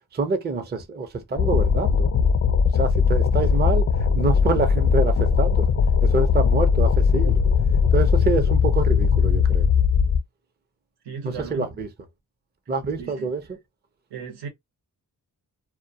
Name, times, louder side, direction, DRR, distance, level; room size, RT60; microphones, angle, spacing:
voice 1, 0.1-2.1 2.7-3.9 4.1-5.7 6.0-7.4 7.9-9.7 11.2-11.9 12.7-13.4, right 3 dB, 25° right, 0.5 m, -26 dB
sound 1, 1.4-10.2, left 6 dB, 40° left, 0.4 m, -19 dB
voice 2, 11.0-11.8 13.0-13.3 14.1-14.5, right 6 dB, 90° right, 0.8 m, -36 dB
2.2 x 2.1 x 2.6 m
cardioid pair, 75°, 38 cm